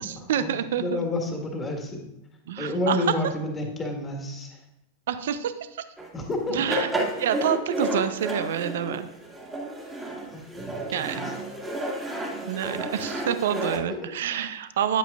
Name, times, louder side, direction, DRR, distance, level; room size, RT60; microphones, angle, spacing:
voice 1, 0.0-1.0 2.5-3.1 5.1-5.8 6.5-6.9 7.2-9.1 10.9-11.3 12.5-15.0, right 9 dB, 60° right, 12 dB, 0.5 m, -28 dB
voice 2, 0.8-2.0 2.6-4.6 6.1-6.6 10.3-11.2 13.9-14.1, left 2 dB, 15° left, 2 dB, 1.6 m, -30 dB
sound 1, 6.0-6.1 6.5-13.8, right 1 dB, 10° right, 1.9 m, -31 dB
9.6 x 8.9 x 2.4 m, 0.88 s
figure-of-eight pair, 90°, 0 cm